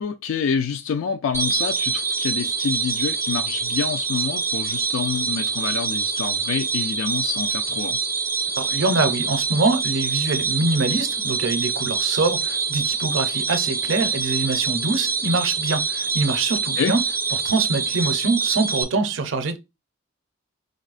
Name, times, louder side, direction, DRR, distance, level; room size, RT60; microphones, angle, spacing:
voice 1, 0.0-8.0 16.8-16.9, left 6 dB, 65° left, 0.3 m, -27 dB
sound 1, 1.3-18.8, right 5 dB, 10° right, 0.3 m, -25 dB
voice 2, 8.6-17.0 17.3-19.6, right 3 dB, 60° right, 0.6 m, -24 dB
5.1 x 2.0 x 2.4 m
head